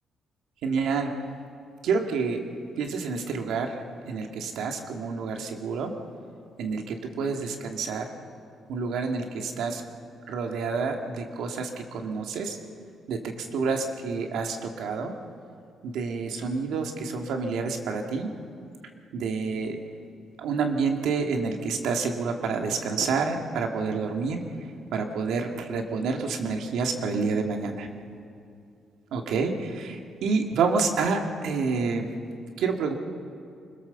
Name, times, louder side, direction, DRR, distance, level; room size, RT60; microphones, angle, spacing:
voice 1, 0.6-1.1 1.8-2.4 2.8-5.9 6.6-8.1 8.7-9.8 10.3-12.6 13.1-15.1 15.8-18.3 19.1-19.8 20.4-24.4 24.9-27.9 29.1-32.1 32.6-32.9, right 4 dB, 85° right, 3 dB, 2.1 m, -28 dB
25.0 x 21.5 x 7.0 m, 2.5 s
cardioid pair, 105°, 0 cm